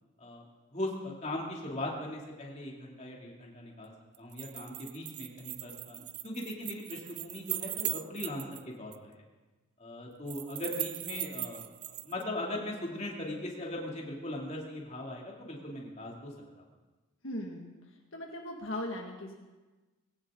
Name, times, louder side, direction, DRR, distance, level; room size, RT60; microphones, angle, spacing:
voice 1, 0.7-3.9 4.2-8.4 8.8-9.2 9.8-16.3 16.6-16.7, left 1 dB, 30° left, -2 dB, 2.7 m, -39 dB
sound 1, 4.1-8.6 8.9-9.0 10.3-12.2, right 17 dB, 90° right, 0.5 m, -39 dB
voice 2, 17.2-17.8 18.1-19.3, left 1 dB, 70° left, 0 dB, 1.8 m, -38 dB
20.0 x 17.0 x 3.8 m, 1.2 s
head